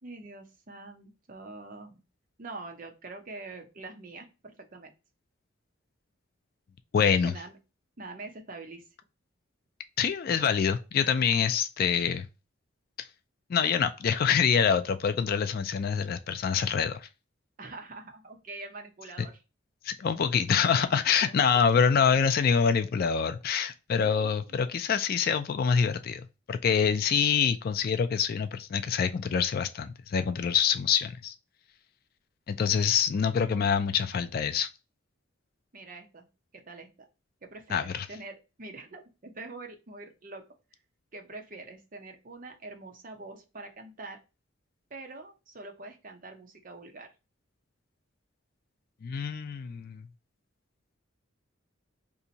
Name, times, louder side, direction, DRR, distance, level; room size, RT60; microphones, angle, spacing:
voice 1, 0.0-1.9 2.4-4.9 7.2-7.6 8.0-8.9 17.6-19.4 21.2-21.3 24.0-24.5 35.7-36.3 36.5-36.9 37.4-40.4 41.1-44.2 44.9-47.1, right 3 dB, 40° right, 0.7 m, -44 dB
voice 2, 6.9-7.3 10.0-12.3 13.5-17.1 19.8-31.3 32.5-34.7 37.7-38.1 49.0-50.1, left 7 dB, 45° left, 0.3 m, -26 dB
2.8 x 2.6 x 3.9 m
head